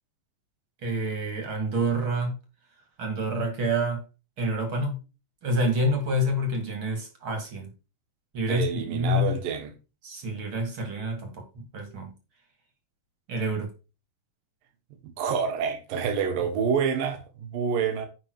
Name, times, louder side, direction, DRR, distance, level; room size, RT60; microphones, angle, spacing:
voice 1, 0.8-2.4 3.0-4.0 4.4-5.0 5.4-7.7 8.3-9.3 10.0-12.1 13.3-13.7, equal, 40° right, 3.0 m, -28 dB
voice 2, 8.5-9.7 15.0-18.1, right 6 dB, 85° right, 3.2 m, -27 dB
10.5 x 5.5 x 4.8 m
omnidirectional pair, 3.9 m